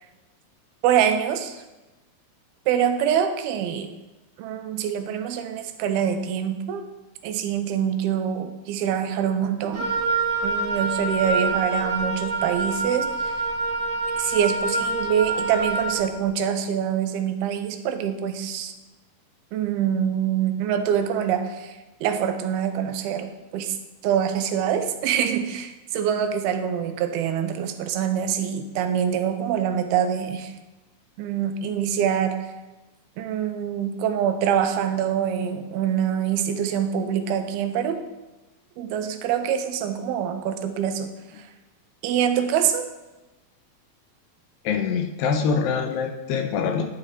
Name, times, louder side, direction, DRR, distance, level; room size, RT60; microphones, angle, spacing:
voice 1, 0.8-1.6 2.7-3.9 4.4-6.9 7.2-9.9 10.4-13.5 14.2-18.7 19.5-23.8 24.0-30.5 31.2-32.4 33.2-38.0 38.8-41.5 42.0-42.9, right 8 dB, 85° right, 8 dB, 2.6 m, -25 dB
Wind instrument woodwind instrument, 9.7-16.0, right 3 dB, 45° right, 0.9 m, -26 dB
voice 2, 44.7-46.8, left 6 dB, 80° left, 5 dB, 2.2 m, -24 dB
10.0 x 4.9 x 4.3 m, 1.1 s
omnidirectional pair, 4.4 m